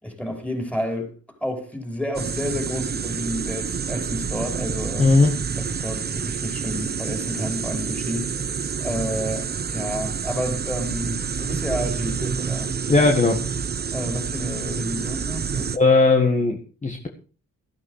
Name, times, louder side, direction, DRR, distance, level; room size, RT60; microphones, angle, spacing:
voice 1, 0.0-1.1 1.4-5.1 5.6-8.3 8.8-12.7 13.9-15.7, equal, 5° left, 5.1 m, -30 dB
sound 1, 2.1-15.8, right 6 dB, 35° right, 1.0 m, -28 dB
voice 2, 5.0-5.3 12.9-13.4 15.7-17.1, left 3 dB, 25° left, 1.8 m, -17 dB
13.0 x 12.5 x 4.9 m
cardioid pair, 90°, 30 cm